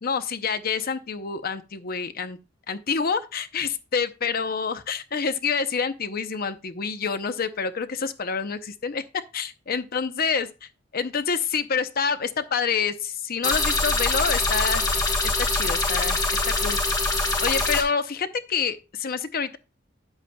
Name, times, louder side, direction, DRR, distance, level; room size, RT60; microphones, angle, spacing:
voice 1, 0.0-2.4 2.7-14.8 15.2-16.8 17.4-19.6, left 5 dB, 50° left, 0.7 m, -27 dB
sound 1, 13.4-17.8, left 2 dB, 20° left, 1.3 m, -24 dB
10.0 x 8.1 x 2.2 m
head